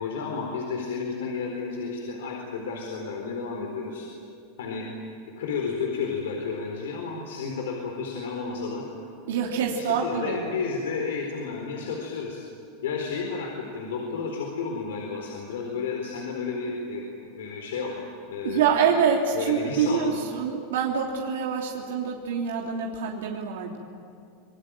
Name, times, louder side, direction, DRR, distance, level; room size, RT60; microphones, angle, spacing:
voice 1, 0.0-4.1 4.6-4.9 5.3-8.9 9.7-12.4 12.8-18.6 19.3-20.1, left 5 dB, 90° left, 0 dB, 4.3 m, -32 dB
voice 2, 9.3-10.6 18.4-23.8, right 6 dB, 90° right, -1 dB, 3.0 m, -26 dB
26.5 x 21.5 x 9.2 m, 2.4 s
supercardioid pair, 140°, 0 cm